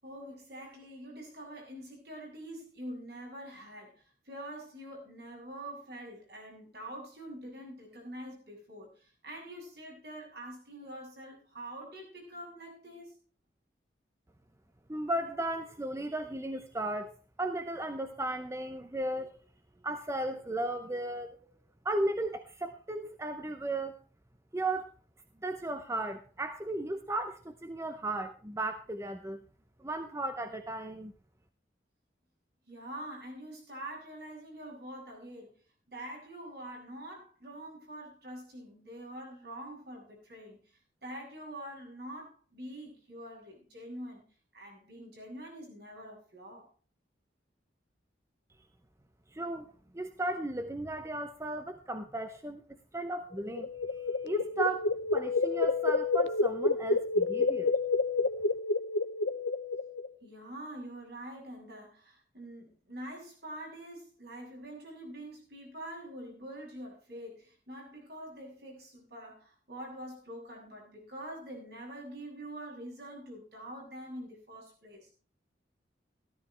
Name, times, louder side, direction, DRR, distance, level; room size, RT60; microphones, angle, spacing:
voice 1, 0.0-13.2 32.7-35.6 35.9-44.2 44.5-46.7 60.2-75.1, right 1 dB, 60° right, 0 dB, 7.2 m, -45 dB
voice 2, 14.9-17.1 17.4-19.4 19.8-21.4 21.8-24.0 24.5-24.9 25.4-29.4 29.8-31.1 49.3-57.7, right 2 dB, 15° right, 8 dB, 0.6 m, -35 dB
sound 1, 53.4-60.1, left 3 dB, 75° left, 0.7 m, -29 dB
15.0 x 13.5 x 3.3 m, 0.37 s
head